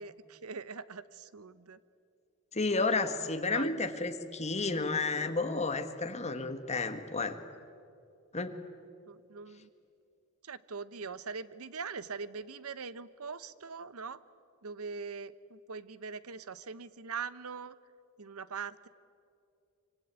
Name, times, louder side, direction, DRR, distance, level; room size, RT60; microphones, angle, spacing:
voice 1, 0.0-1.8 3.5-3.8 9.1-9.7 10.4-14.2 14.6-17.7 18.2-18.9, right 5 dB, 75° right, 16 dB, 0.9 m, -42 dB
voice 2, 2.5-7.4 8.3-8.5, left 3 dB, 30° left, 8 dB, 1.6 m, -31 dB
25.5 x 25.0 x 9.0 m, 2.5 s
head